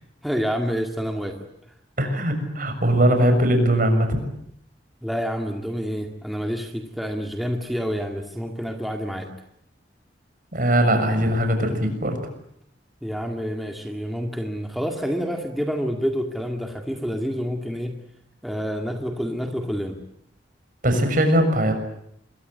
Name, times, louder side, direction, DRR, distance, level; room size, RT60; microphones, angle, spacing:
voice 1, 0.2-1.5 5.0-9.3 13.0-18.0 18.4-20.0, equal, ahead, 3 dB, 2.2 m, -28 dB
voice 2, 2.0-4.2 10.5-12.2 20.8-21.7, right 1 dB, 50° right, 7 dB, 6.8 m, -20 dB
26.5 x 23.0 x 9.5 m, 0.73 s
head